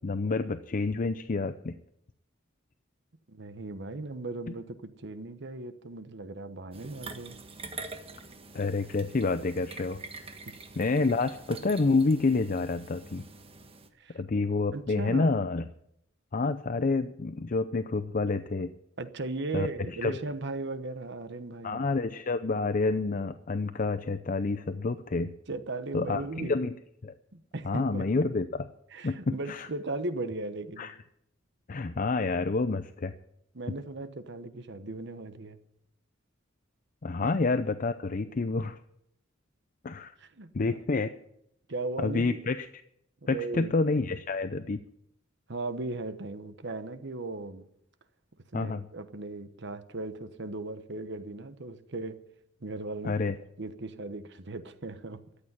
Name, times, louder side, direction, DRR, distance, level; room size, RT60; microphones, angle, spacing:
voice 1, 0.0-1.7 8.5-10.0 10.8-13.2 14.1-15.7 16.3-18.7 19.5-19.7 20.0-20.2 21.6-25.3 25.9-26.7 27.0-27.1 27.6-28.7 29.0-29.7 30.8-30.9 31.7-33.1 37.0-38.8 39.8-40.1 40.5-41.1 42.0-42.7 43.3-44.8 48.5-48.8 53.0-53.3, left 3 dB, 40° left, 11 dB, 0.5 m, -28 dB
voice 2, 3.3-7.4 10.5-10.6 14.0-14.2 14.7-15.4 19.0-21.8 25.5-26.6 27.3-28.1 28.9-30.9 33.5-35.6 40.2-40.8 41.7-42.5 43.2-43.7 45.5-47.7 48.5-52.2 52.6-53.2 53.6-55.2, right 2 dB, 60° right, 11 dB, 1.1 m, -37 dB
sound 1, 6.7-13.9, right 3 dB, 30° right, 1.3 m, -45 dB
13.5 x 8.6 x 9.9 m, 0.76 s
head